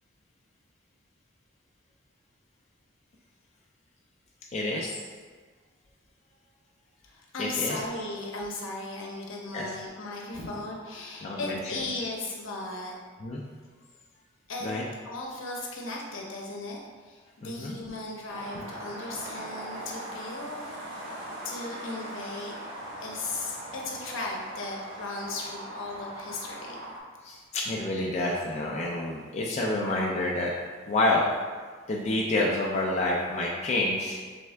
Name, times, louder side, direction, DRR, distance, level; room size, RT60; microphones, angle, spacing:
voice 1, 4.5-4.9 7.4-7.8 9.5-9.7 11.2-11.6 13.2-13.4 14.6-14.8 17.4-17.7 27.2-30.5 30.9-31.3 31.9-34.2, left 2 dB, 35° left, -3 dB, 0.4 m, -28 dB
voice 2, 7.0-12.9 14.5-14.7 15.0-21.0 21.4-22.5 23.0-26.9, left 2 dB, 75° left, -2 dB, 0.8 m, -36 dB
sound 1, 18.3-27.0, right 1 dB, 70° right, 1.0 m, -40 dB
3.6 x 3.4 x 3.3 m, 1.5 s
head